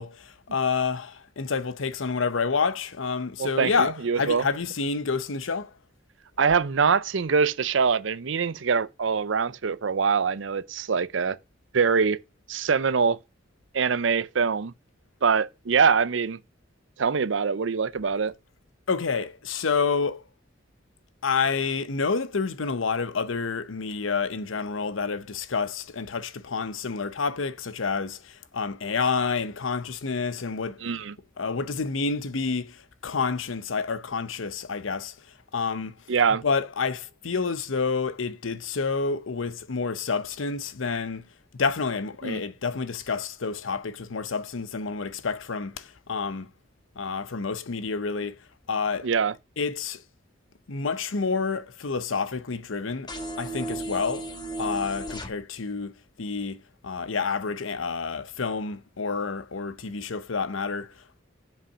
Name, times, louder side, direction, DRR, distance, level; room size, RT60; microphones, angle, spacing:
voice 1, 0.0-5.7 18.9-20.2 21.2-30.8 31.4-35.1 35.5-35.9 36.4-41.3 41.5-46.5 47.0-48.4 48.7-49.1 49.6-50.0 50.7-53.1 53.4-54.3 54.6-60.9, left 5 dB, 85° left, 0.8 m, -29 dB
voice 2, 3.4-4.4 6.4-11.4 11.7-12.2 12.5-13.2 13.7-14.7 15.2-16.4 17.0-18.3 30.8-31.1 36.1-36.4 42.2-42.4 49.0-49.3, right 5 dB, 70° right, 0.6 m, -24 dB
sound 1, 53.1-55.3, right 1 dB, 20° left, 1.4 m, -34 dB
7.5 x 5.6 x 5.6 m
head